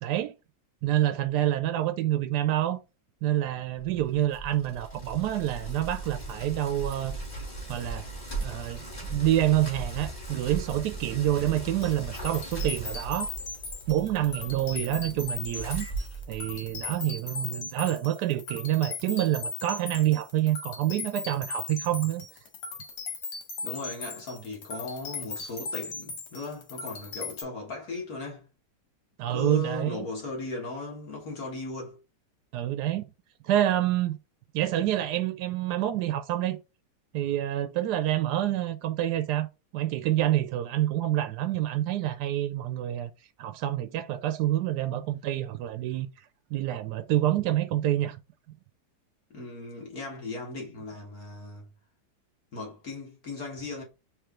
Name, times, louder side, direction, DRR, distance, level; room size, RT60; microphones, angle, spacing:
voice 1, 0.0-0.3 0.8-2.8 3.2-7.1 7.7-8.1 8.4-13.3 13.9-15.9 16.3-22.3 29.2-30.1 32.5-33.1 33.4-34.2 34.5-36.6 37.1-39.5 39.7-43.1 43.4-46.1 46.5-48.2, right 13 dB, 75° right, 1.0 m, -27 dB
Bicycle, 3.8-16.9, right 2 dB, 25° left, 2.1 m, -38 dB
sound 1, 11.8-27.4, left 4 dB, 80° left, 1.8 m, -38 dB
voice 2, 14.6-15.3 23.6-28.5 29.3-32.0 49.3-51.7 52.5-53.8, left 3 dB, 55° left, 1.8 m, -37 dB
4.8 x 3.0 x 3.7 m
omnidirectional pair, 1.9 m